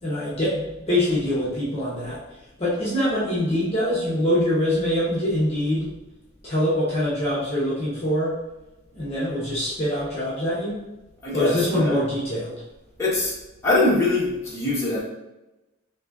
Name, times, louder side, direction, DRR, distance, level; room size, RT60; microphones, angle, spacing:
voice 1, 0.0-2.2 2.6-5.9 6.4-8.3 8.9-10.8 11.3-12.5, left 1 dB, 30° left, -9 dB, 1.2 m, -24 dB
voice 2, 11.2-11.9 13.0-13.3 13.6-15.0, left 2 dB, 15° left, -8 dB, 1.5 m, -22 dB
5.4 x 3.1 x 2.6 m, 0.99 s
head